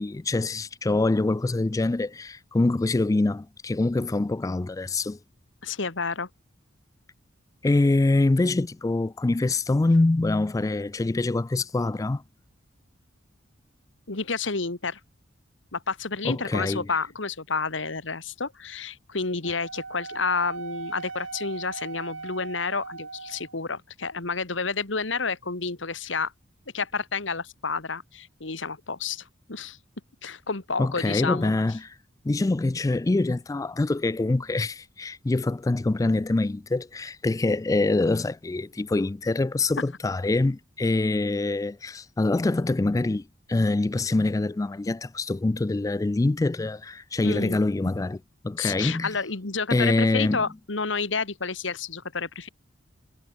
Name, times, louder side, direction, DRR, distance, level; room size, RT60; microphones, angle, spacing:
voice 1, 0.0-5.2 7.6-12.2 16.2-16.9 30.8-31.9 32.2-48.2 48.4-49.1 49.7-50.5, left 2 dB, 15° left, 0.3 m, -25 dB
voice 2, 5.6-6.3 14.1-15.0 15.7-26.3 26.7-29.8 30.2-31.5 47.2-47.6 48.6-52.5, left 4 dB, 75° left, 2.0 m, -30 dB
Wind instrument woodwind instrument, 19.4-23.6, right 4 dB, 90° right, 2.4 m, -38 dB
head